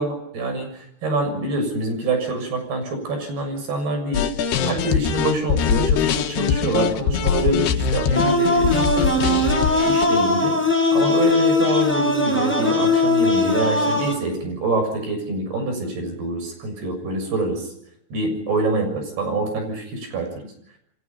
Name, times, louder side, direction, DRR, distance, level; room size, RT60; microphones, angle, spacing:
voice 1, 0.0-4.3 4.6-10.6 10.9-17.7 18.1-20.3, right 2 dB, 75° right, 6 dB, 9.1 m, -25 dB
sound 1, 4.1-10.1, left 8 dB, 75° left, 3.5 m, -22 dB
sound 2, 8.2-14.2, left 2 dB, ahead, 7.0 m, -20 dB
29.5 x 23.5 x 5.6 m, 0.73 s
omnidirectional pair, 4.7 m